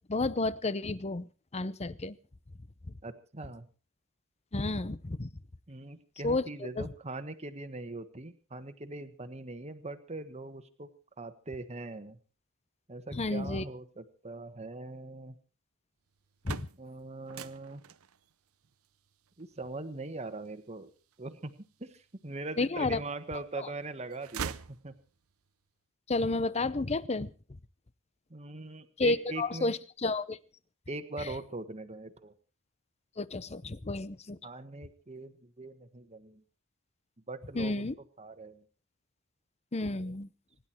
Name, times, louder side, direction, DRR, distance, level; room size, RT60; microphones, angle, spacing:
voice 1, 0.1-1.3 1.5-2.2 4.5-5.3 6.2-6.9 13.1-13.6 16.4-16.7 22.6-23.0 23.6-23.7 26.1-27.3 29.0-30.4 31.2-31.3 33.2-34.4 37.5-37.9 39.7-40.3, left 2 dB, 30° left, 17 dB, 0.7 m, -31 dB
voice 2, 3.0-3.6 5.7-10.9 11.2-12.2 12.9-15.3 16.8-17.8 19.4-20.9 21.2-21.5 21.8-24.5 24.8-24.9 28.3-29.7 30.9-32.3 34.4-36.4 37.3-37.8 38.2-38.6 40.0-40.1, right 2 dB, 30° right, 8 dB, 1.4 m, -41 dB
sound 1, 16.1-22.1 22.7-23.5 23.8-25.4, right 7 dB, 90° right, 0.7 m, -44 dB
25.5 x 11.0 x 4.5 m, 0.35 s
head